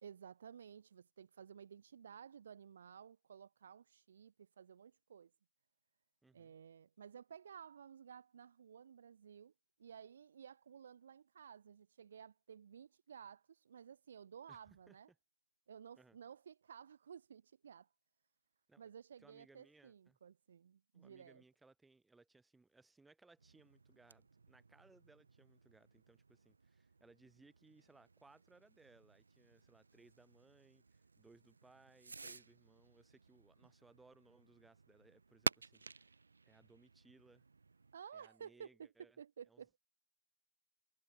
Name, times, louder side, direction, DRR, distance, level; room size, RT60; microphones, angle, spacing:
voice 1, 0.0-5.3 6.3-9.5 9.8-15.1 15.7-17.9 18.8-21.4 33.6-33.7 37.9-39.8, right 8 dB, 50° right, 1.5 m, -55 dB
voice 2, 6.2-6.5 14.5-14.6 14.9-15.0 16.0-16.2 18.7-18.9 19.2-20.2 20.9-36.2 36.4-37.4 38.1-39.2 39.5-39.6, right 3 dB, 5° right, 5.1 m, -66 dB
Fireworks, 23.4-38.0, right 4 dB, 90° right, 1.1 m, -51 dB
hypercardioid pair, 160°, 0 cm